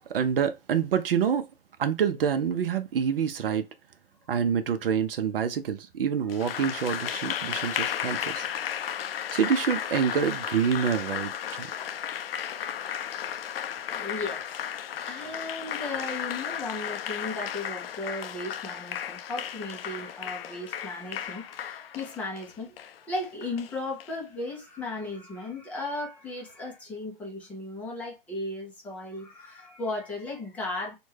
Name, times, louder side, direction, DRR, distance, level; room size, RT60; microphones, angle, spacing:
voice 1, 0.0-1.5 1.8-3.7 4.3-8.5 9.3-11.7, right 7 dB, 70° right, 0.6 m, -27 dB
Applause, 6.3-24.1, left 9 dB, 75° left, 0.4 m, -34 dB
voice 2, 13.9-14.6 15.0-30.9, left 2 dB, 5° left, 0.4 m, -36 dB
3.3 x 2.2 x 3.2 m
hypercardioid pair, 140°, 30 cm